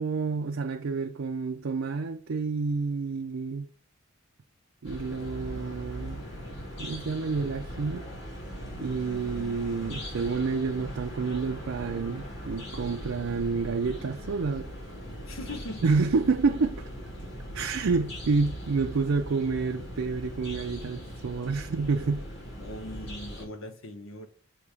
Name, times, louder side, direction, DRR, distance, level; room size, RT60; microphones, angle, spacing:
voice 1, 0.0-3.7 4.8-6.2 6.8-8.0 8.8-14.7 15.8-16.9 17.5-22.2, right 4 dB, 75° right, 0.5 m, -29 dB
sound 1, 4.8-23.4, equal, 65° left, 2.7 m, -40 dB
voice 2, 15.3-15.8 22.6-24.3, left 1 dB, 90° left, 1.0 m, -40 dB
6.8 x 2.9 x 4.7 m
head